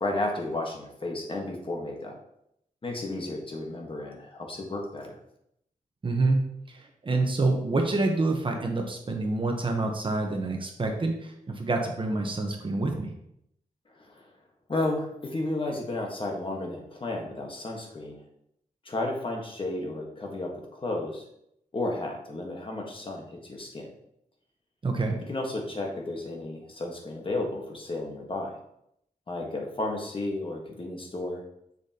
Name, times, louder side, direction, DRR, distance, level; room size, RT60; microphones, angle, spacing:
voice 1, 0.0-2.2 2.8-5.2 13.9-14.3 14.7-18.2 18.8-21.2 21.7-23.9 25.3-28.6 29.3-31.4, left 2 dB, 35° left, 0 dB, 1.4 m, -33 dB
voice 2, 6.0-13.1 24.8-25.2, right 2 dB, 35° right, 2 dB, 1.0 m, -27 dB
7.0 x 6.6 x 2.9 m, 0.76 s
wide cardioid pair, 130°, 15 cm